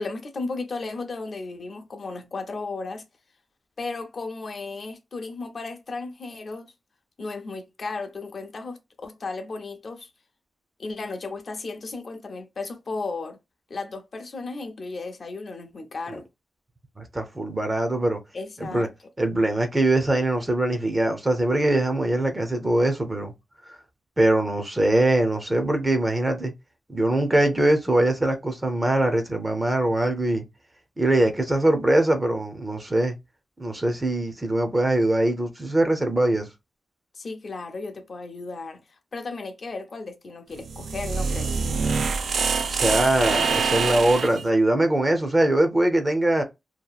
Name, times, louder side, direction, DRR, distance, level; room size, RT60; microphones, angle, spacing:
voice 1, 0.0-3.1 3.8-6.7 7.2-10.1 10.8-13.4 13.7-16.3 18.3-18.9 37.1-41.7, left 3 dB, 45° left, 0.6 m, -35 dB
voice 2, 17.0-18.2 18.6-18.9 19.2-23.3 23.6-23.8 24.2-26.5 26.9-30.4 31.0-33.2 33.6-36.5 42.6-46.4, right 1 dB, 15° right, 0.5 m, -22 dB
sound 1, 40.6-44.4, right 5 dB, 65° right, 0.4 m, -25 dB
2.8 x 2.4 x 2.3 m
wide cardioid pair, 160°, 0 cm